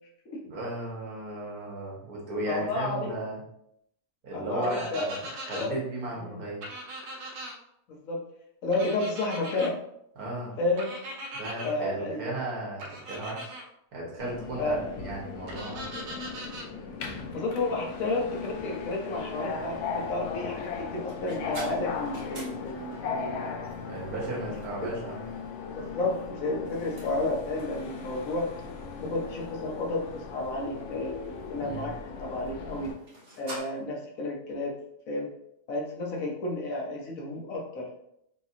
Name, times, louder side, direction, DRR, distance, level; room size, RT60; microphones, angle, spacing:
voice 1, 0.4-3.4 4.2-6.6 10.2-10.5 11.3-13.5 13.9-15.9 23.8-25.2 31.6-31.9, right 2 dB, 80° right, -4 dB, 1.8 m, -35 dB
voice 2, 2.5-3.2 4.3-5.1 5.5-5.8 6.2-6.4 7.9-8.2 8.6-9.8 10.6-11.0 11.6-12.3 14.6-14.8 17.3-23.6 25.8-28.5 29.0-31.1 31.5-31.9 32.2-32.9 33.4-34.7 35.1-35.3 35.7-38.0, left 2 dB, 65° left, -1 dB, 1.2 m, -31 dB
sound 1, 4.6-5.7 6.6-7.5 8.7-9.7 10.8-11.7 12.8-13.6 15.5-16.7, right 1 dB, 60° right, 0.8 m, -40 dB
Subway metro underground, 14.2-32.9, left 5 dB, 90° left, 1.1 m, -38 dB
sound 2, 18.5-33.6, right 1 dB, 30° right, 1.2 m, -48 dB
4.8 x 2.9 x 2.8 m, 0.76 s
omnidirectional pair, 1.6 m